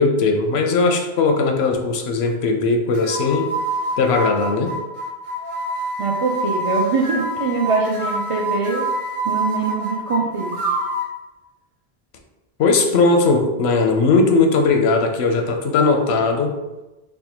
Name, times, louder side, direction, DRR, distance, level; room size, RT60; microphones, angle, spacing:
voice 1, 0.0-3.5 4.0-4.8 12.6-16.6, left 3 dB, 85° left, 4 dB, 0.8 m, -18 dB
sound 1, 2.9-11.1, right 2 dB, 35° right, 0.7 m, -26 dB
voice 2, 6.0-8.8 9.2-10.6, right 4 dB, 55° right, -3 dB, 0.3 m, -23 dB
3.3 x 2.1 x 4.2 m, 1.1 s
omnidirectional pair, 1.0 m